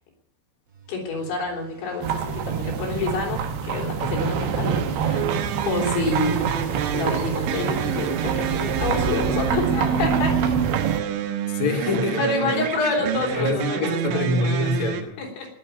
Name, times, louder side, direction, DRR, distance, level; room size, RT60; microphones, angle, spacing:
sound 1, 0.7-12.5, right 3 dB, 35° right, 2.1 m, -47 dB
voice 1, 0.9-5.3 5.7-6.4 6.9-10.4 11.9-14.2 15.2-15.5, left 3 dB, 80° left, 1 dB, 6.0 m, -27 dB
sound 2, 2.0-11.0, right 7 dB, 70° right, 3.0 m, -26 dB
sound 3, 5.1-15.0, right 9 dB, 85° right, 3.6 m, -28 dB
voice 2, 11.5-12.2 13.3-15.2, left 3 dB, 50° left, 3 dB, 2.6 m, -25 dB
19.5 x 7.5 x 9.0 m, 0.74 s
omnidirectional pair, 5.2 m